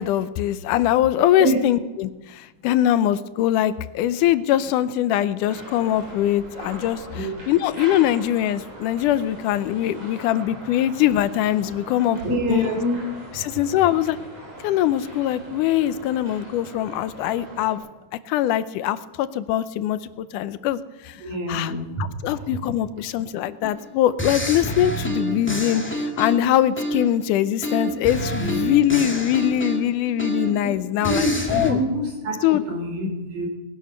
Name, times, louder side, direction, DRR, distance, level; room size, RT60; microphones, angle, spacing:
voice 1, 0.0-12.7 13.4-14.2 14.6-17.8 18.3-21.2 21.5-21.7 22.0-31.8 32.4-32.6, left 12 dB, 85° left, 14 dB, 2.2 m, -22 dB
voice 2, 1.4-1.8 7.1-7.3 12.2-13.0 21.2-22.7 28.4-28.6 31.0-33.5, equal, 50° right, 2 dB, 4.3 m, -26 dB
sound 1, 5.4-17.8, right 1 dB, 65° right, 6.8 m, -41 dB
sound 2, 23.6-23.8 24.2-27.2 27.6-30.7 31.0-31.7, right 1 dB, 5° left, 1.4 m, -28 dB
19.5 x 11.0 x 6.7 m, 1.2 s
omnidirectional pair, 3.6 m